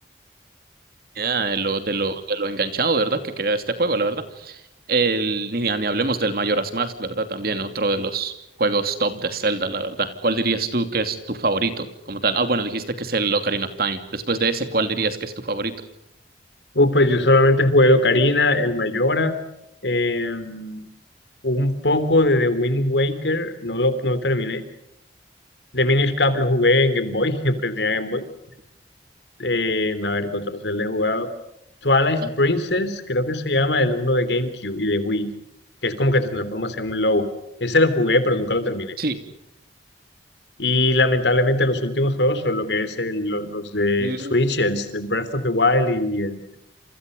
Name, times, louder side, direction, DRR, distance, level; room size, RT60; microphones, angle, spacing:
voice 1, 1.1-4.6 4.9-8.3 8.6-15.7 32.2-32.5 39.0-39.2 44.0-44.3, right 3 dB, 55° right, 9 dB, 2.8 m, -24 dB
voice 2, 16.7-19.3 19.8-20.8 21.4-24.6 25.7-28.2 29.4-31.3 31.8-35.3 35.8-37.3 37.6-39.0 40.6-46.5, left 2 dB, 80° left, 12 dB, 3.3 m, -21 dB
29.0 x 28.0 x 5.3 m, 0.80 s
head